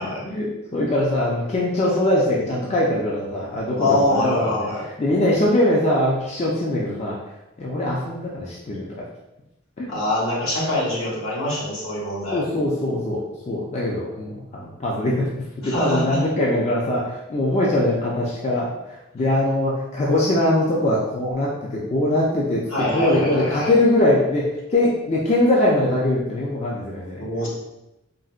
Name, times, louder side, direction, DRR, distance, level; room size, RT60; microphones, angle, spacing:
voice 1, 0.2-4.7 5.0-7.2 7.6-8.9 9.8-9.9 12.3-15.3 15.6-22.6 22.9-24.4 24.7-27.2, left 1 dB, 30° left, -4 dB, 0.4 m, -22 dB
voice 2, 3.8-4.8 9.9-12.4 15.6-16.2 22.7-23.7 27.2-27.5, left 1 dB, 75° left, -7 dB, 1.3 m, -24 dB
3.8 x 2.1 x 2.4 m, 0.94 s
head